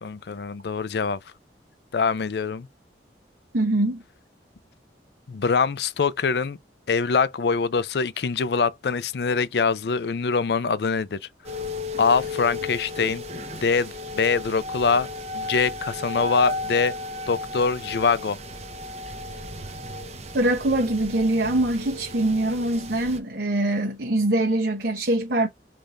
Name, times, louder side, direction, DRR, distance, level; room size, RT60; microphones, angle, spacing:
voice 1, 0.0-1.2 1.9-2.7 5.3-6.6 6.9-11.2 12.0-13.2 13.6-15.1 15.3-17.0 17.3-18.4, left 5 dB, 65° left, 0.4 m, -24 dB
voice 2, 3.5-4.0 20.3-25.5, right 1 dB, 65° right, 0.9 m, -23 dB
sound 1, 11.4-23.2, left 2 dB, 35° right, 0.9 m, -34 dB
5.1 x 3.4 x 2.5 m
head